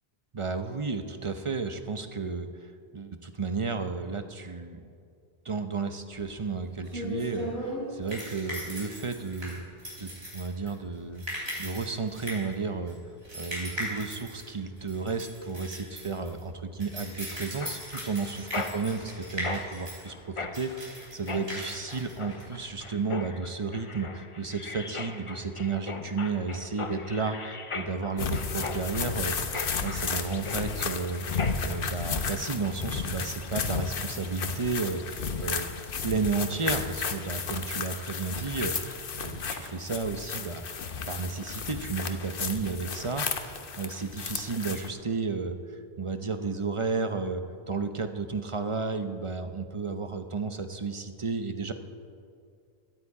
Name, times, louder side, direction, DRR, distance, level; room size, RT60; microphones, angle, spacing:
voice 1, 0.3-4.9 5.4-9.6 10.0-11.2 11.6-13.0 13.3-27.4 27.7-29.4 29.8-31.3 31.6-35.7 36.0-40.7 41.1-51.7, right 4 dB, 35° right, 8 dB, 0.7 m, -33 dB
sound 1, 6.2-22.9, equal, 85° right, 4.7 m, -39 dB
Mechanisms, 17.6-31.8, left 3 dB, 35° left, 0.7 m, -39 dB
sound 2, 28.2-44.9, left 5 dB, 60° left, 1.0 m, -33 dB
17.0 x 12.5 x 4.8 m, 2.3 s
omnidirectional pair, 1.0 m